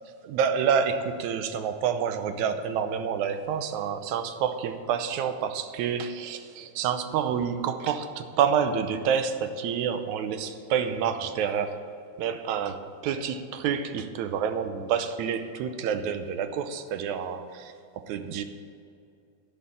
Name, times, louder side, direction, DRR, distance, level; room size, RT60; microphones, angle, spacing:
voice 1, 0.2-11.8 12.2-18.4, right 7 dB, 75° right, 8 dB, 2.0 m, -28 dB
13.0 x 5.6 x 8.2 m, 2.5 s
omnidirectional pair, 3.5 m